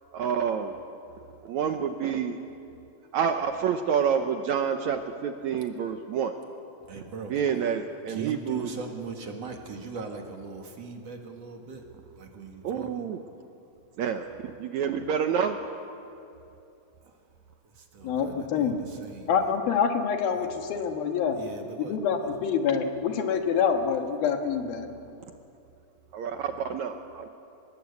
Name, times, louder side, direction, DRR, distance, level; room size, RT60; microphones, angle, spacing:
voice 1, 0.1-0.8 1.5-2.4 3.1-6.4 7.3-8.7 12.6-13.2 14.0-14.3 14.6-15.6 26.1-27.3, right 7 dB, 70° right, 6 dB, 1.8 m, -28 dB
voice 2, 6.9-7.3 8.1-11.8 12.2-13.1 17.8-19.3 20.3-20.5 21.3-22.0, right 5 dB, 50° right, 3 dB, 2.7 m, -40 dB
voice 3, 18.0-18.7 19.3-21.4 21.8-24.9, left 7 dB, 85° left, 5 dB, 3.4 m, -26 dB
24.5 x 20.5 x 8.3 m, 2.7 s
omnidirectional pair, 4.1 m